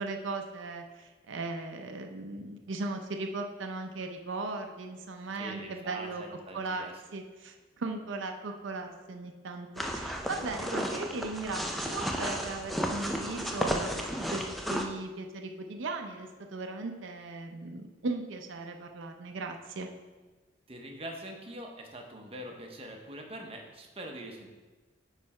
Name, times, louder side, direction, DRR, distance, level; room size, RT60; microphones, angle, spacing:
voice 1, 0.0-6.2 6.5-6.8 7.1-14.4 14.7-19.9, right 3 dB, 75° right, 4 dB, 0.6 m, -37 dB
voice 2, 5.3-7.0 20.7-24.5, right 1 dB, 30° right, 2 dB, 0.8 m, -43 dB
sound 1, 9.8-14.8, equal, ahead, 0.4 m, -33 dB
8.6 x 3.3 x 4.8 m, 1.3 s
head